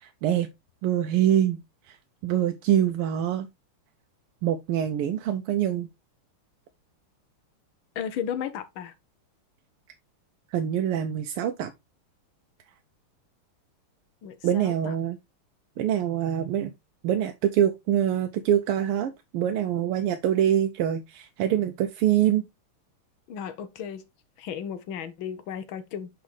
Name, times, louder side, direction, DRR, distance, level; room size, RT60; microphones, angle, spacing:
voice 1, 0.0-0.5 0.8-1.6 1.9-2.0 2.2-3.5 4.4-5.9 10.5-11.7 14.4-15.2 15.8-16.7 17.0-22.4, right 10 dB, 90° right, 1.5 m, -25 dB
voice 2, 7.9-8.9 14.2-14.9 23.3-24.1 24.4-26.1, left 8 dB, 70° left, 1.6 m, -34 dB
6.0 x 5.8 x 3.1 m
omnidirectional pair, 2.4 m